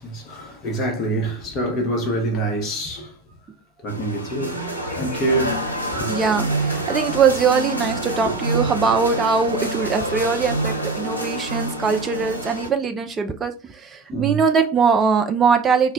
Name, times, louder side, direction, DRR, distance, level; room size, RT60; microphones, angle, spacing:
voice 1, 0.0-3.1 3.8-5.6 5.9-6.1 8.2-8.3 14.1-14.4, right 2 dB, 30° left, 0.8 m, -26 dB
sound 1, 3.9-12.7, right 1 dB, 90° right, 0.5 m, -27 dB
voice 2, 6.1-15.9, right 5 dB, 20° right, 0.3 m, -21 dB
2.1 x 2.1 x 3.6 m
figure-of-eight pair, 90°, 0 cm